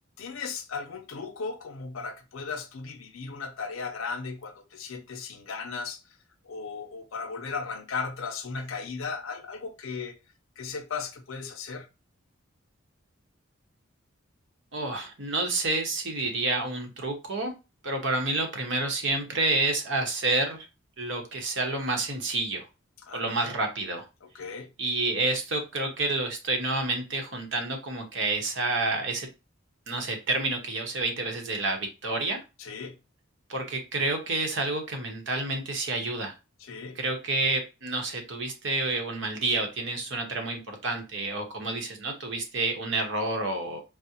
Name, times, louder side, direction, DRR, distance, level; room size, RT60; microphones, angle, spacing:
voice 1, 0.2-6.0 6.5-10.2 10.6-11.9 23.0-23.5 24.3-24.7 32.6-33.0 36.6-37.0, left 5 dB, 80° left, 0.6 m, -36 dB
voice 2, 14.7-17.5 17.8-20.7 21.0-22.7 23.1-24.1 24.8-29.3 29.9-32.4 33.5-36.3 36.9-43.8, right 2 dB, 65° right, 0.9 m, -29 dB
4.7 x 2.0 x 2.7 m
head